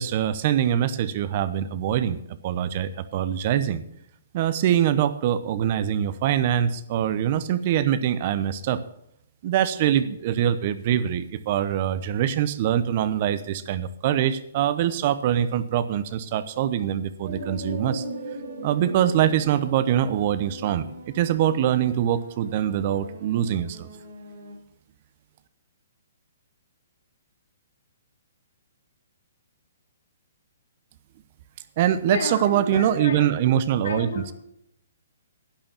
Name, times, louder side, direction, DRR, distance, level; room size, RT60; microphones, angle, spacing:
voice 1, 0.0-2.2 2.4-3.8 4.3-8.8 9.4-18.0 18.6-20.9 21.1-23.9 31.8-34.3, right 10 dB, 45° right, 0.9 m, -23 dB
sound 1, 17.2-24.5, right 1 dB, 60° right, 4.9 m, -39 dB
voice 2, 32.1-33.3 33.8-34.3, left 4 dB, 75° left, 3.2 m, -31 dB
11.5 x 8.8 x 6.9 m
hypercardioid pair, 135°, 0 cm